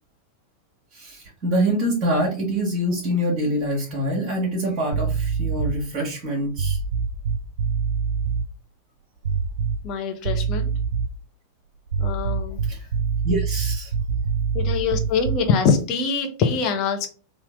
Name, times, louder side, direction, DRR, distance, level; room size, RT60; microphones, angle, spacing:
voice 1, 0.9-6.8 12.7-12.9 13.2-13.9, equal, 35° right, -3 dB, 1.4 m, -25 dB
sound 1, 4.9-5.9 6.5-8.5 9.2-10.0 10.3-11.2 11.9-15.5, right 5 dB, 60° right, 0.4 m, -25 dB
voice 2, 9.8-10.7 12.0-12.6 14.5-17.1, left 5 dB, 40° left, 4 dB, 1.1 m, -23 dB
4.3 x 2.9 x 3.6 m, 0.35 s
figure-of-eight pair, 90°, 0 cm